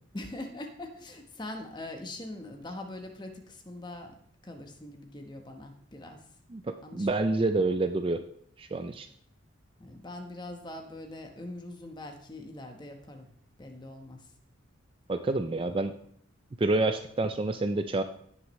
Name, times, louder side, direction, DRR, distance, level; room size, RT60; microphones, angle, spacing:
voice 1, 0.1-4.2 4.4-6.2 6.8-7.3 9.8-13.3 13.6-14.2, left 1 dB, 20° left, 4 dB, 1.1 m, -42 dB
voice 2, 6.5-8.2 8.6-9.1 15.1-15.9 16.6-18.0, right 2 dB, 25° right, 8 dB, 0.4 m, -28 dB
17.0 x 6.1 x 3.1 m, 0.65 s
head